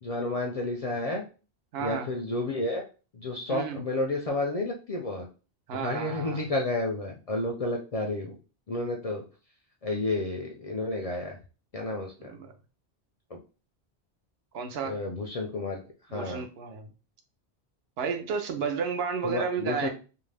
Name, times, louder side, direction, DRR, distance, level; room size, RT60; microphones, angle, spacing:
voice 1, 0.0-1.2 1.8-2.8 3.1-5.3 5.8-8.4 8.7-9.2 9.8-11.4 11.7-12.3 13.3-13.4 14.8-16.4 19.2-19.9, left 2 dB, 55° left, 1 dB, 0.4 m, -31 dB
voice 2, 1.7-2.1 3.5-3.8 5.7-6.4 12.2-12.5 14.5-15.0 16.1-16.9 18.0-19.9, right 6 dB, 75° right, 5 dB, 0.8 m, -32 dB
2.6 x 2.1 x 3.3 m, 0.34 s
omnidirectional pair, 1.1 m